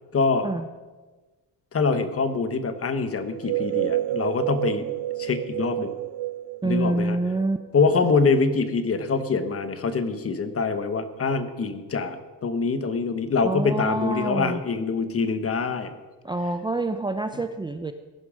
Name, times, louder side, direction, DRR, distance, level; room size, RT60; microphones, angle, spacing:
voice 1, 0.1-0.5 1.7-4.8 5.2-5.9 6.6-7.2 7.7-15.9, left 4 dB, 35° left, 10 dB, 1.2 m, -24 dB
sound 1, 3.3-7.9, right 15 dB, 75° right, 0.6 m, -29 dB
voice 2, 6.6-7.6 13.4-14.6 16.2-17.9, right 2 dB, 10° right, 8 dB, 0.5 m, -26 dB
16.5 x 11.0 x 6.4 m, 1.3 s
cardioid pair, 160°, 39 cm